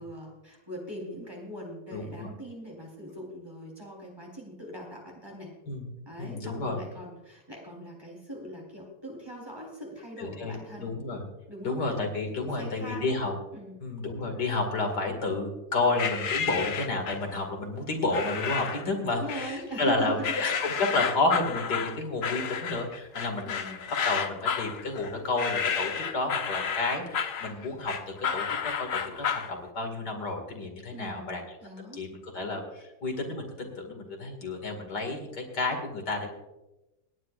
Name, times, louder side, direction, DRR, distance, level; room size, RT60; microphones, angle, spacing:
voice 1, 0.0-5.6 6.1-10.9 11.5-11.8 12.3-13.1 13.5-13.8 19.0-20.8 21.0-21.1 23.4-23.6 30.9-31.3 31.6-32.0, equal, 15° right, -2 dB, 3.9 m, -41 dB
voice 2, 1.9-2.3 5.7-5.9 6.2-6.8 10.2-11.2 11.6-13.3 13.8-23.8 24.0-31.4 31.9-36.3, left 2 dB, 80° left, 3 dB, 2.8 m, -31 dB
sound 1, 16.0-17.3 18.1-18.9 19.3-19.9 20.2-29.5, left 7 dB, 60° left, 1.1 m, -31 dB
27.0 x 10.0 x 2.5 m, 0.99 s
omnidirectional pair, 1.8 m